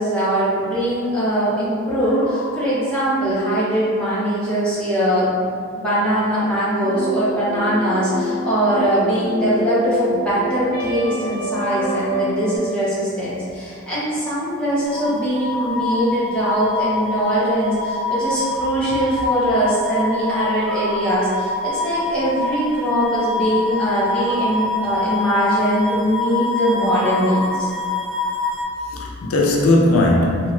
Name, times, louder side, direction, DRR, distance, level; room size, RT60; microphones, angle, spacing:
voice 1, 0.0-5.5 5.8-27.7, equal, 5° left, -11 dB, 0.8 m, -21 dB
voice 2, 2.0-2.7 7.3-8.4 11.5-12.3 15.5-15.7 18.5-18.7 20.4-21.1 26.7-27.6 28.8-30.5, left 2 dB, 85° left, -1 dB, 0.4 m, -23 dB
sound 1, 6.8-12.6, equal, 45° right, 1.0 m, -27 dB
sound 2, 14.8-28.6, left 2 dB, 80° right, 0.6 m, -25 dB
2.9 x 2.2 x 3.0 m, 2.3 s
head